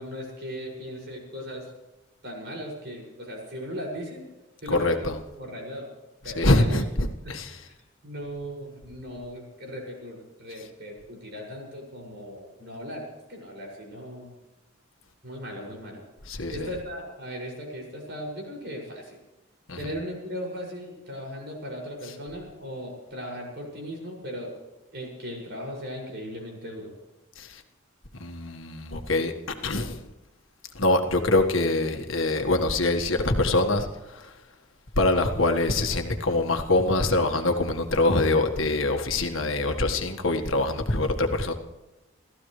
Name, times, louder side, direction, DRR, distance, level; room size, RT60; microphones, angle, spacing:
voice 1, 0.0-1.7 2.2-4.3 4.6-5.9 6.2-6.8 7.2-7.3 8.0-14.3 15.2-16.0 16.5-19.2 19.8-24.6 24.9-26.9, equal, 55° right, 0 dB, 6.4 m, -37 dB
voice 2, 4.7-5.1 6.4-7.6 16.3-16.7 19.7-19.8 27.4-27.6 28.2-29.3 29.6-30.0 30.8-34.3 35.0-41.5, left 2 dB, 75° left, 5 dB, 1.7 m, -24 dB
29.5 x 14.5 x 3.3 m, 1.1 s
head